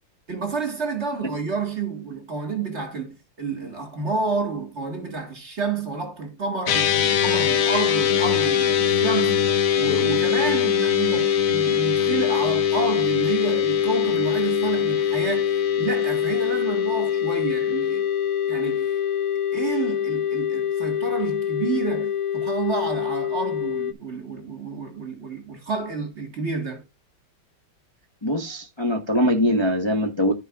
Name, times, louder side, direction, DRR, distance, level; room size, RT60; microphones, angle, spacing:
voice 1, 0.3-9.4 9.8-15.5 15.8-18.1 18.5-19.0 19.5-26.8, right 4 dB, 35° right, 2.2 m, -29 dB
sound 1, 6.7-23.9, left 9 dB, 60° left, 1.0 m, -23 dB
voice 2, 28.2-30.3, equal, 15° left, 1.1 m, -22 dB
14.0 x 5.3 x 2.6 m
omnidirectional pair, 2.1 m